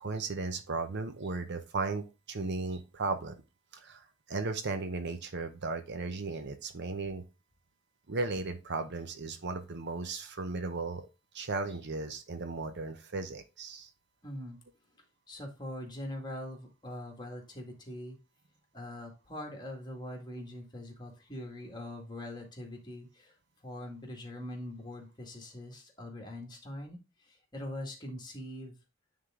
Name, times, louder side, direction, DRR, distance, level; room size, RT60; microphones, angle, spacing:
voice 1, 0.0-3.3 3.7-7.2 8.1-11.0 11.3-13.9, right 3 dB, 55° right, 8 dB, 0.8 m, -36 dB
voice 2, 14.2-14.6 15.3-18.2 18.7-23.4 23.6-28.8, left 1 dB, 20° left, 1 dB, 1.9 m, -42 dB
9.7 x 3.7 x 3.6 m, 0.27 s
head